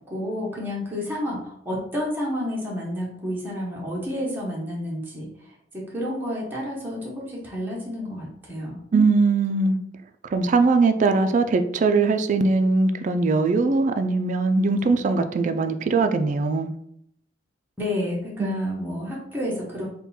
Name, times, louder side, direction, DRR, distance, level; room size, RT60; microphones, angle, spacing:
voice 1, 0.1-5.3 5.7-8.8 17.8-19.9, left 1 dB, 10° right, -5 dB, 0.9 m, -30 dB
voice 2, 8.9-9.8 10.3-16.7 18.4-18.6, right 3 dB, 40° right, 8 dB, 0.3 m, -21 dB
3.7 x 2.3 x 4.1 m, 0.72 s
head